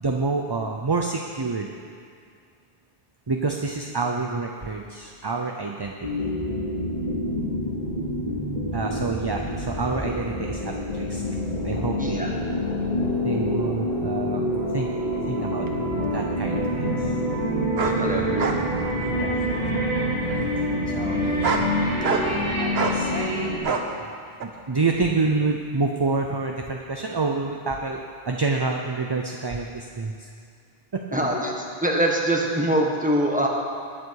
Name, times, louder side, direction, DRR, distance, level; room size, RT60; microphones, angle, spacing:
voice 1, 0.0-1.7 3.3-5.9 8.7-11.2 11.6-12.4 13.2-14.9 15.3-15.7 16.1-17.2 19.1-19.4 20.9-21.5 22.5-23.8 24.4-30.3 30.9-31.0, right 3 dB, 30° right, 2 dB, 0.6 m, -28 dB
sound 1, 6.0-23.6, equal, 40° left, 2.7 m, -26 dB
voice 2, 12.0-12.3 17.8-18.5 31.1-33.5, right 1 dB, 10° right, -1 dB, 1.5 m, -24 dB
sound 2, 15.7-15.8 17.8-18.0 18.4-18.6 19.0-19.5 20.3-20.4 21.2-21.7 22.0-22.4 22.7-23.0 23.6-23.9 24.4-24.5, right 4 dB, 80° right, 1.2 m, -26 dB
20.0 x 7.7 x 4.8 m, 2.3 s
omnidirectional pair, 1.0 m